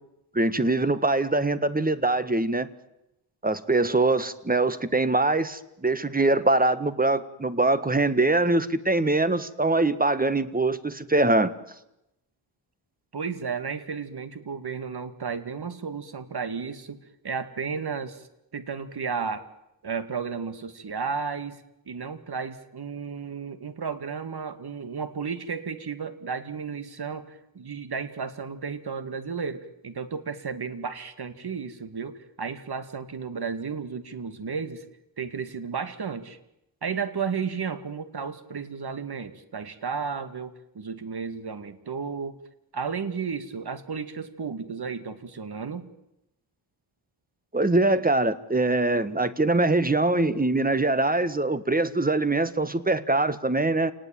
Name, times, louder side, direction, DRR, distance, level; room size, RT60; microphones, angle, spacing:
voice 1, 0.3-2.7 3.4-11.5 47.5-53.9, right 2 dB, 20° right, 14 dB, 1.6 m, -23 dB
voice 2, 13.1-17.0 17.2-18.3 18.5-19.5 19.8-34.8 35.2-36.4 36.8-42.4 42.7-45.9, right 5 dB, 50° right, 11 dB, 2.4 m, -33 dB
28.5 x 19.0 x 9.2 m, 0.88 s
cardioid pair, 75°, 48 cm